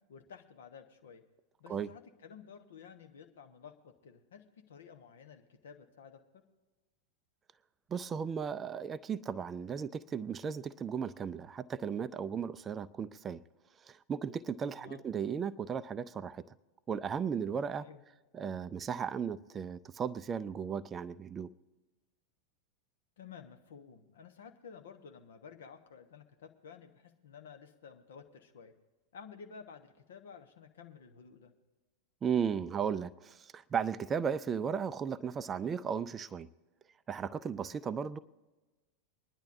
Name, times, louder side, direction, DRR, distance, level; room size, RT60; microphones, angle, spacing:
voice 1, 0.1-1.2 1.6-6.2 14.8-15.0 17.8-18.0 23.2-28.7 29.1-31.5, left 6 dB, 60° left, 1.1 m, -52 dB
voice 2, 7.9-13.4 13.8-16.4 16.9-17.9 18.3-21.5 32.2-36.5 37.1-38.2, right 7 dB, 20° right, 0.4 m, -35 dB
24.5 x 10.5 x 2.7 m
figure-of-eight pair, 90°, 0 cm